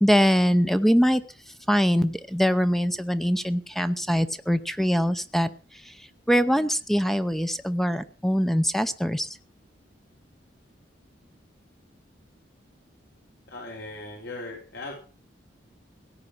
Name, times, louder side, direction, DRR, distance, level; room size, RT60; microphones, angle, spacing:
voice 1, 0.0-1.2 1.7-5.5 5.9-6.0 6.3-9.3, equal, ahead, 12 dB, 0.6 m, -23 dB
voice 2, 13.5-15.0, left 2 dB, 60° left, -1 dB, 3.9 m, -38 dB
17.0 x 9.7 x 6.0 m, 0.37 s
head